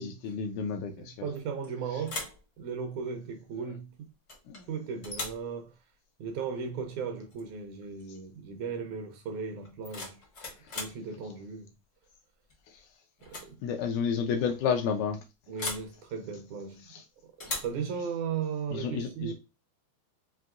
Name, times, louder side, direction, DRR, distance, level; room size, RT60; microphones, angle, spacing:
voice 1, 0.0-1.3 1.9-2.0 3.6-3.7 4.5-4.7 10.6-10.8 12.7-12.9 13.6-15.2 16.8-17.0 18.7-19.3, left 6 dB, 80° left, 1.8 m, -32 dB
voice 2, 1.0-2.3 2.6-4.1 4.7-5.7 6.2-10.2 10.8-11.7 13.2-13.6 15.5-16.9 17.2-19.3, right 6 dB, 75° right, 1.9 m, -36 dB
sound 1, 1.3-1.7 2.0-2.4 4.3-4.6 5.0-5.5 7.3-7.5 7.8-8.2 9.6-11.0 12.5-12.8 13.2-13.5 13.8-13.9 15.6-15.9 17.4-17.8, left 2 dB, 55° left, 0.8 m, -38 dB
5.7 x 2.6 x 2.4 m
omnidirectional pair, 3.7 m